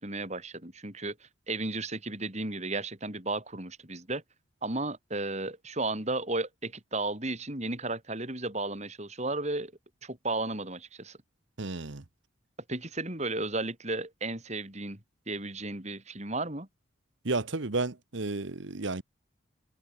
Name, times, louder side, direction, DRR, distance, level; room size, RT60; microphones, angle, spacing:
voice 1, 0.0-4.2 4.6-9.7 10.0-11.2 12.7-15.0 15.3-16.7, right 2 dB, 35° right, 4.3 m, -34 dB
voice 2, 11.6-12.0 17.2-19.0, right 3 dB, 65° right, 1.2 m, -32 dB
head